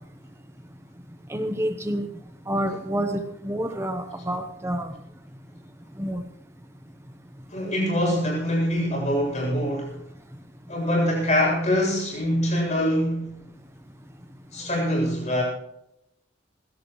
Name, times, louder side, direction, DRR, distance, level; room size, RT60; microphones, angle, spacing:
voice 1, 1.3-2.1 2.5-4.9 6.0-6.2, right 1 dB, 15° right, 0.9 m, -28 dB
voice 2, 7.5-10.0 10.7-13.4 14.5-15.4, equal, 35° left, 7.6 m, -24 dB
21.0 x 16.5 x 3.2 m
head